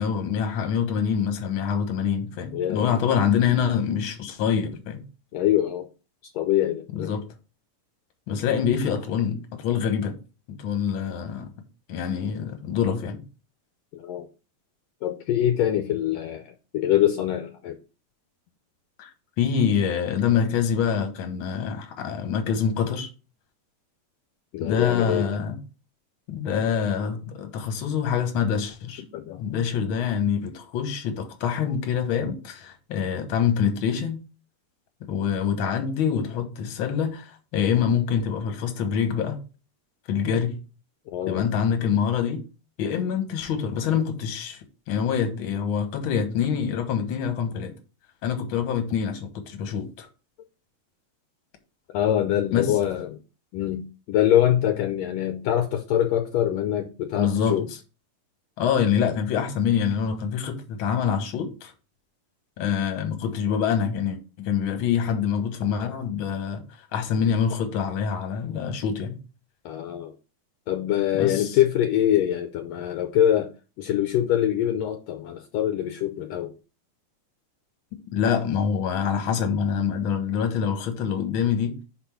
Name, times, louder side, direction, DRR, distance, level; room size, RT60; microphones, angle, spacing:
voice 1, 0.0-5.0 6.9-7.2 8.3-10.2 10.6-11.5 11.9-13.2 19.0-19.1 19.4-23.1 24.6-25.6 26.3-29.0 29.4-34.2 35.0-39.4 40.1-40.6 41.3-42.4 42.8-44.6 44.9-47.7 48.2-50.1 52.5-52.8 57.2-57.6 58.6-61.7 62.6-66.6 66.9-69.2 71.1-71.6 78.1-81.8, left 7 dB, 55° left, 1.6 m, -25 dB
voice 2, 2.5-3.0 5.3-5.9 6.3-7.2 13.9-14.3 15.0-17.8 24.5-25.4 29.1-29.4 41.1-41.5 51.9-53.2 53.5-57.7 69.6-70.1 70.7-73.5 73.8-76.5, left 11 dB, 80° left, 1.7 m, -24 dB
5.6 x 4.3 x 5.8 m
omnidirectional pair, 3.4 m